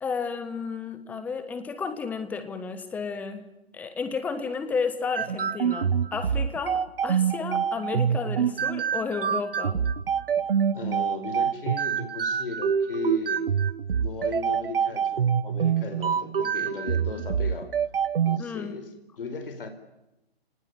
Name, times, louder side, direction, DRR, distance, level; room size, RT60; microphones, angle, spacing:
voice 1, 0.0-3.4 3.7-9.8 18.4-18.8, left 5 dB, 5° left, 10 dB, 1.2 m, -32 dB
sound 1, 5.1-18.4, right 7 dB, 60° right, 1.3 m, -26 dB
voice 2, 10.7-13.5 13.9-17.7 18.2-18.9 19.2-19.7, left 4 dB, 60° left, 7 dB, 4.7 m, -36 dB
30.0 x 19.5 x 9.6 m, 0.95 s
hypercardioid pair, 160°, 31 cm